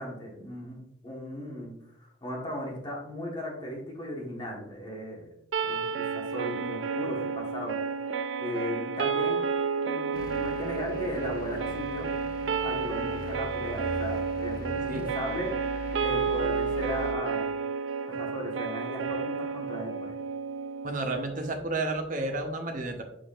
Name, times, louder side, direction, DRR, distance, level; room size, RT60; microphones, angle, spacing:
voice 1, 0.0-5.3 5.6-7.8 8.4-9.4 9.8-12.1 12.6-15.6 16.0-17.5 18.1-20.1, equal, 25° left, -2 dB, 1.4 m, -37 dB
sound 1, 5.5-21.6, right 5 dB, 80° right, 0.4 m, -31 dB
sound 2, 10.1-17.1, left 2 dB, 50° left, 0.7 m, -41 dB
voice 2, 20.8-23.0, right 2 dB, 45° right, 3 dB, 0.9 m, -31 dB
6.2 x 6.1 x 2.5 m, 0.79 s
head